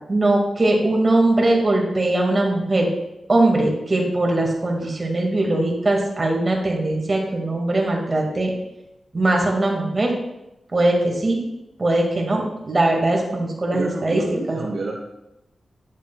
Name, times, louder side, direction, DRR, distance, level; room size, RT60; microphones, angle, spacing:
voice 1, 0.1-2.9 3.3-8.5 9.1-10.1 10.7-11.4 11.8-14.2 14.5-14.6, right 2 dB, 35° right, 0 dB, 1.8 m, -20 dB
voice 2, 13.7-15.0, right 3 dB, 60° right, -1 dB, 0.9 m, -30 dB
8.3 x 7.4 x 2.3 m, 0.90 s
wide cardioid pair, 85°, 0 cm